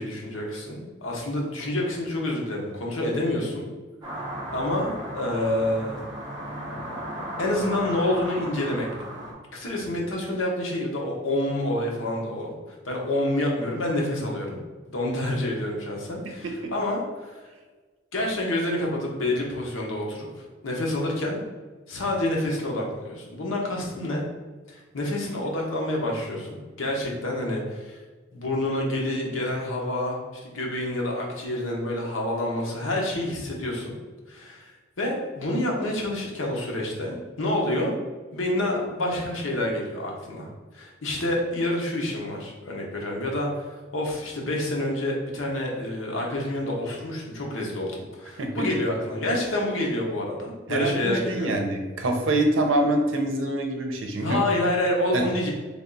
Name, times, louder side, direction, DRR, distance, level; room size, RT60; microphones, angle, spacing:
voice 1, 0.0-3.6 4.5-6.0 7.4-8.9 9.5-14.6 14.9-17.4 18.1-21.4 21.9-24.2 24.7-28.0 28.3-33.9 34.3-37.9 38.3-40.5 40.7-51.6 54.2-55.5, left 1 dB, 90° left, -1 dB, 0.8 m, -28 dB
sound 1, 4.0-9.3, right 1 dB, 25° right, 0.8 m, -35 dB
voice 2, 48.4-48.7 50.7-54.4 55.1-55.2, right 1 dB, 85° right, 3 dB, 0.6 m, -25 dB
3.4 x 2.3 x 3.8 m, 1.3 s
head